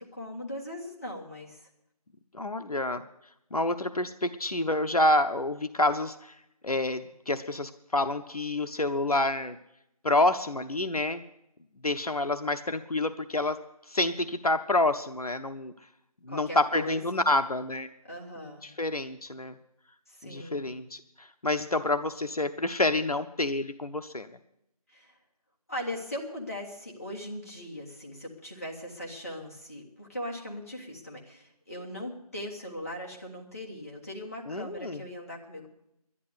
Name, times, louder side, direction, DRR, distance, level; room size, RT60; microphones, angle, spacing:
voice 1, 0.0-1.7 16.3-17.2 18.0-18.7 20.1-20.7 24.9-25.2 25.7-35.7, left 1 dB, 25° left, -1 dB, 1.5 m, -39 dB
voice 2, 2.3-3.0 3.5-6.4 6.6-9.6 10.0-11.2 11.8-13.6 13.9-15.7 16.3-17.9 18.6-19.5 20.2-24.3 34.5-35.0, left 2 dB, 70° left, 9 dB, 0.8 m, -28 dB
11.5 x 11.0 x 8.2 m, 0.82 s
figure-of-eight pair, 170°, 20 cm